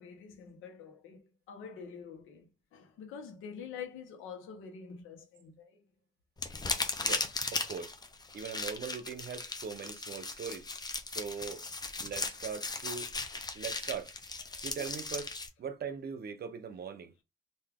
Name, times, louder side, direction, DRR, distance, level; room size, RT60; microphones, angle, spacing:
voice 1, 0.0-5.8 14.5-14.6, left 6 dB, 90° left, 1.1 m, -47 dB
sound 1, 6.4-15.5, left 3 dB, 20° left, 0.8 m, -37 dB
voice 2, 7.0-8.0 8.3-10.7 11.1-11.6 12.0-13.1 13.5-14.1 14.6-15.3 15.6-17.1, right 6 dB, 50° right, 0.8 m, -40 dB
3.5 x 2.7 x 3.5 m
cardioid pair, 90°, 20 cm